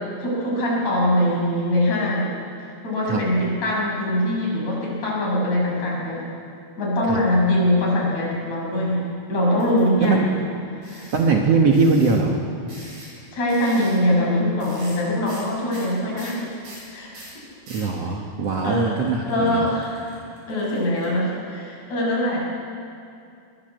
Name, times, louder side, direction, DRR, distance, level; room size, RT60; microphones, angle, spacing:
voice 1, 0.0-2.3 2.8-6.3 6.8-10.5 10.7-11.1 13.3-16.5 16.9-17.2 18.6-19.0 19.3-20.2 20.5-22.4, left 1 dB, 35° left, -4 dB, 7.3 m, -23 dB
sound 1, 9.6-10.0 10.8-11.2 11.7-12.1 12.7-13.2 13.5-13.9 14.6-15.0 15.3-15.4 15.7-17.9 18.4-21.0, right 1 dB, 50° right, 9.8 m, -43 dB
voice 2, 11.1-12.4 17.7-19.6, right 4 dB, 75° right, 1 dB, 1.4 m, -20 dB
23.0 x 20.0 x 8.1 m, 2.6 s
omnidirectional pair, 5.2 m